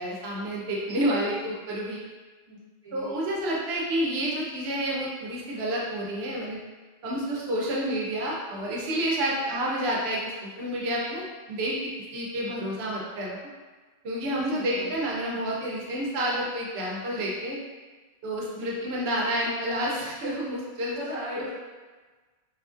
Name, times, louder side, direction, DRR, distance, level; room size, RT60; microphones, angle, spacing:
voice 1, 0.0-2.0 2.9-6.6 7.0-13.4 14.0-17.6 18.2-21.0 21.4-21.5, right 1 dB, 75° right, -4 dB, 0.9 m, -29 dB
voice 2, 2.5-3.2 9.3-9.4 14.3-14.9 18.5-18.9 20.9-21.5, left 1 dB, 35° right, -10 dB, 0.9 m, -39 dB
3.0 x 2.4 x 2.4 m, 1.3 s
omnidirectional pair, 1.1 m